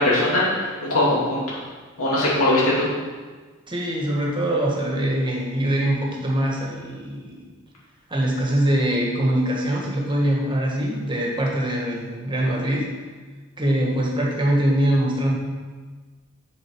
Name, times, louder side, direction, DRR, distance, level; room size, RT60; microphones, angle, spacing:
voice 1, 0.0-1.6 2.0-2.9, left 1 dB, 75° left, -7 dB, 2.4 m, -20 dB
voice 2, 3.7-7.4 8.1-12.9 13.6-15.3, right 1 dB, 25° right, -2 dB, 1.6 m, -23 dB
6.9 x 6.5 x 4.6 m, 1.4 s
head